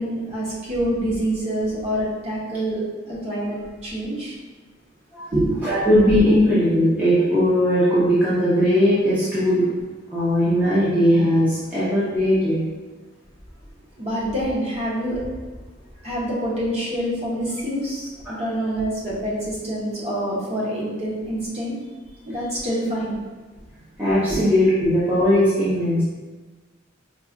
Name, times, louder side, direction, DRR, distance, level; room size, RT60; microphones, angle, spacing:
voice 1, 0.0-2.8 3.1-4.3 5.3-5.6 14.0-15.3 16.0-21.8 22.3-23.2 24.3-24.4, right 1 dB, 30° right, -6 dB, 0.9 m, -26 dB
voice 2, 5.6-9.7 10.1-12.6 18.3-18.4 24.0-26.0, equal, 10° right, -11 dB, 0.7 m, -19 dB
4.6 x 2.4 x 2.5 m, 1.3 s
head